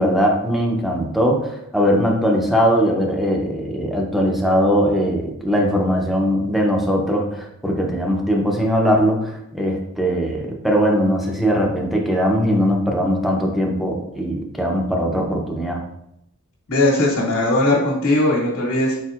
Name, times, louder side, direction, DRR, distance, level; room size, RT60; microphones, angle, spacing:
voice 1, 0.0-15.8, equal, ahead, 0 dB, 0.6 m, -20 dB
voice 2, 16.7-19.0, left 1 dB, 80° left, -4 dB, 1.4 m, -18 dB
4.7 x 4.4 x 2.4 m, 0.80 s
head